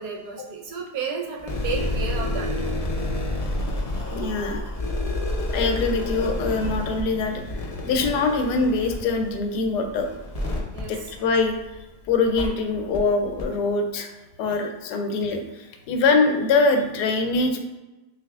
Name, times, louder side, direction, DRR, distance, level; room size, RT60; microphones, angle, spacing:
voice 1, 0.0-2.5 10.7-10.9 14.5-14.6, right 4 dB, 75° right, 0 dB, 1.3 m, -32 dB
sound 1, 1.4-11.8 12.3-12.5 12.9-13.0 13.4-13.5, left 1 dB, 45° left, 0.5 m, -29 dB
voice 2, 4.1-4.6 5.5-10.1 10.9-11.5 12.1-14.1 14.4-17.6, left 3 dB, 80° left, 4 dB, 1.1 m, -23 dB
5.8 x 2.8 x 2.3 m, 1.1 s
omnidirectional pair, 1.8 m